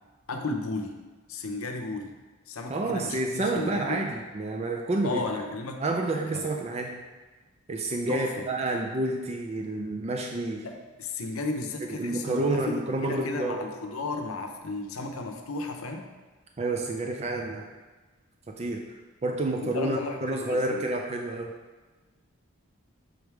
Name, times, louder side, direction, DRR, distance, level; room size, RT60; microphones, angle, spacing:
voice 1, 0.3-1.0 1.3-2.1 2.5-4.0 5.0-5.8 6.3-6.5 8.1-8.5 10.6-16.1 19.6-20.9, left 3 dB, 90° left, 4 dB, 0.7 m, -34 dB
voice 2, 2.7-5.2 5.8-7.0 7.7-10.7 11.8-13.6 16.6-17.6 18.6-18.8 19.2-21.5, right 2 dB, 30° right, 1 dB, 0.4 m, -29 dB
6.3 x 3.4 x 4.6 m, 1.3 s
head